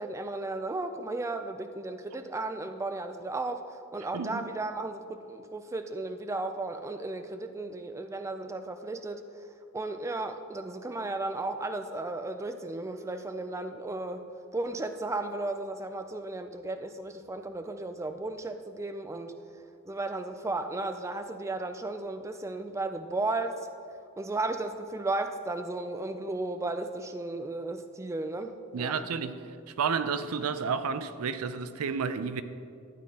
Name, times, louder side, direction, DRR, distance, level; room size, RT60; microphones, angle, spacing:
voice 1, 0.0-9.2 9.7-14.3 14.5-19.4 19.9-23.7 24.2-29.0, right 2 dB, 15° right, 0.3 m, -34 dB
voice 2, 28.7-32.4, right 6 dB, 80° right, 0.5 m, -31 dB
12.5 x 9.5 x 2.8 m
head